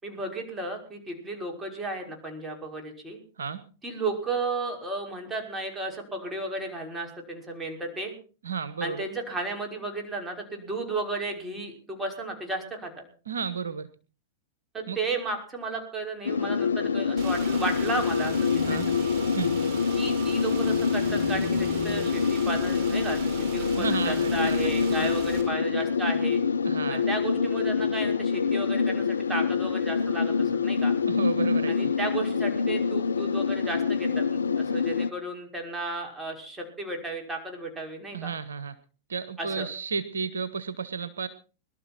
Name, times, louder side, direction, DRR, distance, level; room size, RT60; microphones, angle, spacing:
voice 1, 0.0-3.2 3.8-8.1 8.8-13.0 14.7-19.1 19.9-26.4 26.9-30.9 31.7-38.3 39.4-39.7, right 2 dB, 15° right, 2 dB, 5.8 m, -34 dB
voice 2, 8.4-9.0 13.3-13.9 14.9-15.0 18.7-18.9 19.3-19.5 23.8-24.7 25.0-25.2 26.6-27.0 31.1-31.9 38.1-38.8 39.1-41.3, right 6 dB, 75° right, 13 dB, 1.1 m, -33 dB
sound 1, 16.3-35.1, left 5 dB, 80° left, 0.7 m, -26 dB
Car / Engine, 17.2-25.4, right 4 dB, 45° right, 5.4 m, -37 dB
22.0 x 12.5 x 4.4 m, 0.37 s
figure-of-eight pair, 100°, 0 cm